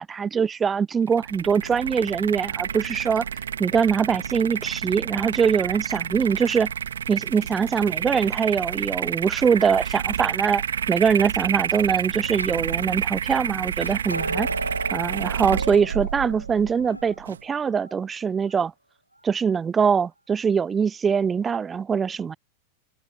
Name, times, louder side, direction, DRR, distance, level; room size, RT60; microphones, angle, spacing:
voice 1, 0.0-3.3 3.6-6.7 7.1-14.5 14.9-18.7 19.2-22.4, right 6 dB, 20° right, 0.3 m, -23 dB
sound 1, 1.1-17.4, right 8 dB, 65° right, 2.0 m, -29 dB
sound 2, 1.6-4.8 14.1-18.0 18.4-18.6 19.2-19.3, right 1 dB, 85° right, 2.3 m, -37 dB
sound 3, 12.2-13.0 13.3-14.7 15.3-16.0 16.7-17.1, left 2 dB, 85° left, 4.2 m, -44 dB
figure-of-eight pair, 90°, 0 cm